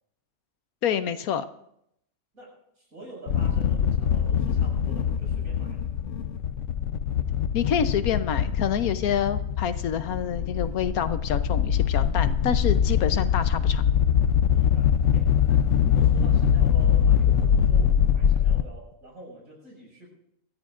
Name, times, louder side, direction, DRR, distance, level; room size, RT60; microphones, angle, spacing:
voice 1, 0.8-1.4 7.5-13.8, left 8 dB, 85° left, 11 dB, 1.3 m, -27 dB
voice 2, 2.3-5.8 14.5-20.1, right 2 dB, 75° right, -2 dB, 6.6 m, -46 dB
sound 1, 3.3-18.6, left 8 dB, 65° left, 1.0 m, -23 dB
25.5 x 14.5 x 2.5 m, 0.76 s
omnidirectional pair, 1.5 m